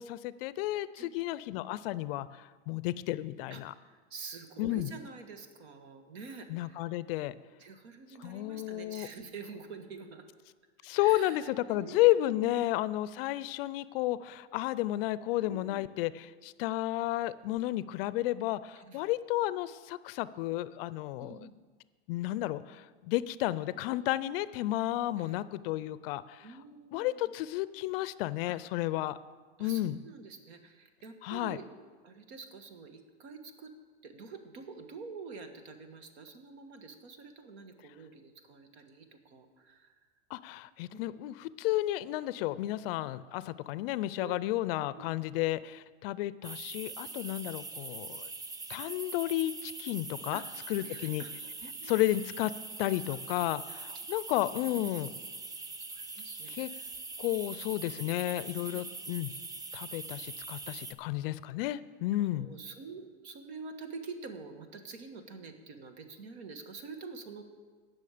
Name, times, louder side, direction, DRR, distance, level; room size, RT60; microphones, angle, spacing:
voice 1, 0.0-3.7 4.6-4.9 6.5-7.3 8.2-9.1 10.8-21.4 22.1-26.5 26.9-29.2 29.6-30.0 31.2-31.6 40.3-48.3 48.7-50.4 50.7-51.2 51.9-52.5 52.8-55.1 56.5-56.7 57.2-59.3 59.7-62.5, left 16 dB, 55° left, 17 dB, 0.5 m, -32 dB
voice 2, 3.9-6.8 7.6-10.2 11.0-12.6 15.4-15.9 18.8-19.0 21.2-21.6 25.2-25.3 26.4-27.2 28.5-28.6 29.6-31.6 32.0-33.7 34.0-39.9 40.9-41.0 44.2-44.4 45.0-45.1 50.3-51.3 51.6-52.0 53.1-53.5 54.3-55.0 55.9-56.9 57.3-57.4 58.7-58.8 62.2-67.4, right 4 dB, 70° right, 7 dB, 1.5 m, -47 dB
sound 1, 46.4-60.9, right 3 dB, 10° right, 0.4 m, -43 dB
17.5 x 6.3 x 5.0 m, 1.5 s
hypercardioid pair, 120°, 34 cm